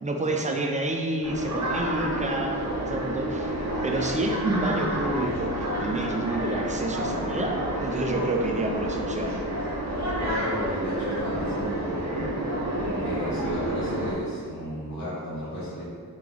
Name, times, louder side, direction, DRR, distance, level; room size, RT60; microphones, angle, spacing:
voice 1, 0.0-9.4, right 2 dB, 20° right, 2 dB, 0.3 m, -29 dB
sound 1, 1.2-14.1, right 1 dB, 45° right, 0.8 m, -29 dB
voice 2, 10.2-12.3 13.0-15.8, equal, 60° left, -10 dB, 1.1 m, -34 dB
3.2 x 2.9 x 3.7 m, 2.2 s
wide cardioid pair, 95°, 39 cm